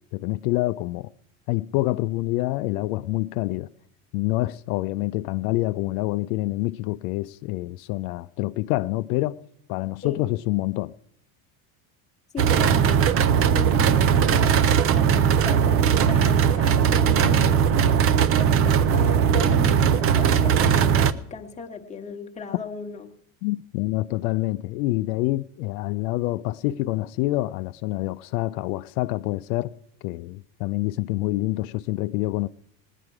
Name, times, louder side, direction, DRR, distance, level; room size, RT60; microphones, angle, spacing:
voice 1, 0.1-1.1 1.5-3.7 4.1-9.4 9.7-10.9 23.4-29.7 30.0-32.5, left 18 dB, 80° left, 0.5 m, -26 dB
voice 2, 12.3-18.0 18.3-23.1, left 5 dB, 15° left, 1.2 m, -36 dB
sound 1, 12.4-21.1, right 8 dB, 35° right, 0.5 m, -19 dB
18.5 x 10.0 x 4.8 m
supercardioid pair, 130°, 43 cm